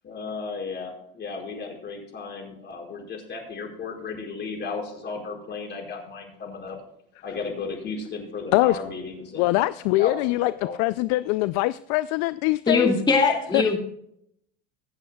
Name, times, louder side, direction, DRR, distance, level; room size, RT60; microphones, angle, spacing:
voice 1, 0.0-6.8 7.2-10.8, left 4 dB, 35° left, 0 dB, 5.0 m, -35 dB
voice 2, 9.4-10.5 10.8-12.9 13.5-13.6, left 19 dB, 60° left, 16 dB, 0.5 m, -22 dB
voice 3, 12.7-13.8, left 4 dB, 15° left, 0 dB, 2.3 m, -21 dB
24.0 x 8.4 x 2.3 m, 0.73 s
supercardioid pair, 95°, 30 cm